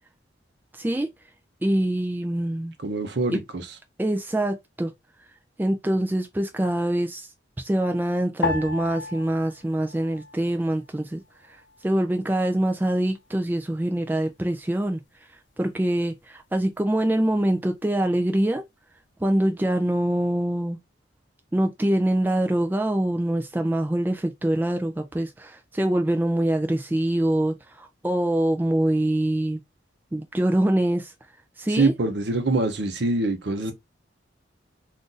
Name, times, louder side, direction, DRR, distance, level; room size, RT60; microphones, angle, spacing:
voice 1, 0.7-1.1 1.6-2.7 3.3-3.4 4.0-4.9 5.6-7.3 7.6-11.2 11.5-15.0 15.6-18.6 19.2-20.8 21.5-29.6 30.1-31.1 31.6-31.9, right 1 dB, 10° right, 0.3 m, -24 dB
voice 2, 2.8-3.8 31.7-33.7, right 2 dB, 65° right, 0.7 m, -25 dB
sound 1, 8.4-10.9 11.2-12.1 12.7-13.1, left 3 dB, 80° left, 0.6 m, -34 dB
2.6 x 2.5 x 3.8 m
head